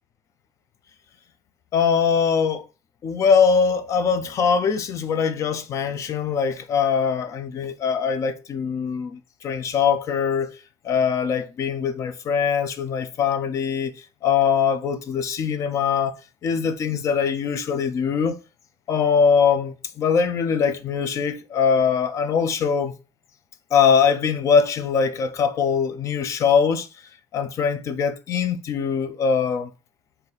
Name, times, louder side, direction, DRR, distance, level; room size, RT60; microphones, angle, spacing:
voice 1, 1.7-2.6 3.0-10.6 10.8-16.1 16.4-18.4 18.9-22.9 23.7-26.9 27.3-29.7, left 6 dB, 40° left, 0.5 m, -22 dB
3.9 x 2.6 x 4.0 m
cardioid pair, 150°, 8 cm